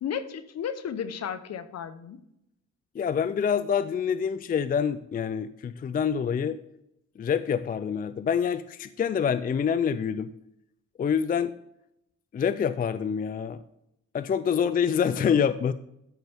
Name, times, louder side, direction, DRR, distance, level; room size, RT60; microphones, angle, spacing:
voice 1, 0.0-2.2, left 8 dB, 60° left, 11 dB, 1.0 m, -33 dB
voice 2, 2.9-6.6 7.2-10.3 11.0-11.5 12.3-13.6 14.1-15.7, left 7 dB, 30° left, 13 dB, 0.4 m, -26 dB
13.5 x 6.0 x 3.5 m, 0.81 s
cardioid pair, 90°, 30 cm